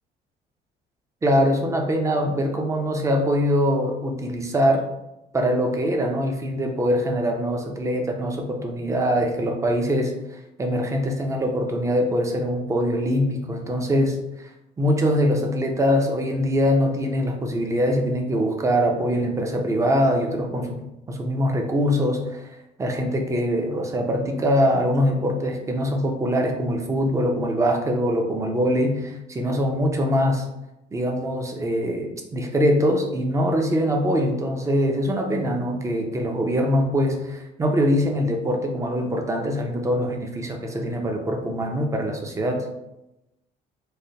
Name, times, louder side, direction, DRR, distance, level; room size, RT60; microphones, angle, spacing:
voice 1, 1.2-4.8 5.3-14.5 14.8-22.5 22.8-30.4 30.9-42.7, equal, 20° right, 3 dB, 0.5 m, -23 dB
3.2 x 2.1 x 2.7 m, 0.91 s
cardioid pair, 110°, 17 cm